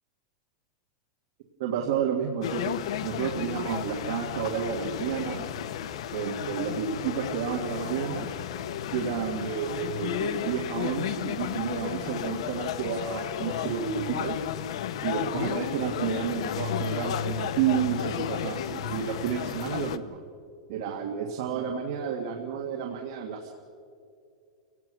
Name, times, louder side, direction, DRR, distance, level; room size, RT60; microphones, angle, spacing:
voice 1, 1.6-2.8 3.0-5.4 6.1-8.3 8.9-14.4 15.0-20.2 20.7-23.5, right 7 dB, 50° right, 2 dB, 1.8 m, -31 dB
sound 1, 2.4-20.0, left 9 dB, 70° left, 0.9 m, -33 dB
29.5 x 17.5 x 6.2 m, 2.4 s
supercardioid pair, 175°, 3 cm